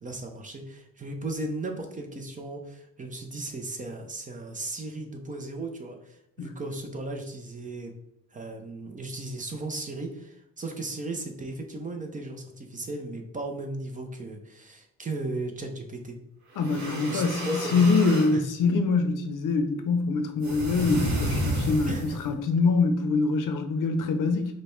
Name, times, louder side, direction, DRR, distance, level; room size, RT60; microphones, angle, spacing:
voice 1, 0.0-8.0 8.3-16.2 17.1-17.8 18.3-18.4 21.9-22.2, right 2 dB, 25° right, 4 dB, 0.5 m, -36 dB
sound 1, 16.5-18.4 20.4-22.3, right 1 dB, 55° right, 1.2 m, -31 dB
voice 2, 16.6-24.6, left 4 dB, 65° left, 6 dB, 0.6 m, -24 dB
4.9 x 2.2 x 3.1 m, 0.79 s
cardioid pair, 120°, 34 cm